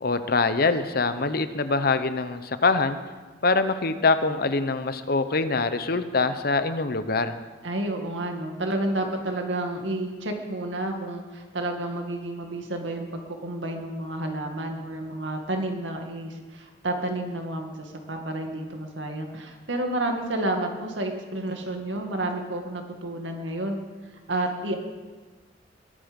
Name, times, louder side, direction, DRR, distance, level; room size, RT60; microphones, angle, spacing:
voice 1, 0.0-3.0 3.4-7.3, left 3 dB, 55° left, 11 dB, 0.9 m, -24 dB
voice 2, 7.6-23.8 24.3-24.8, right 1 dB, 85° right, 3 dB, 2.1 m, -30 dB
22.0 x 8.9 x 5.3 m, 1.3 s
head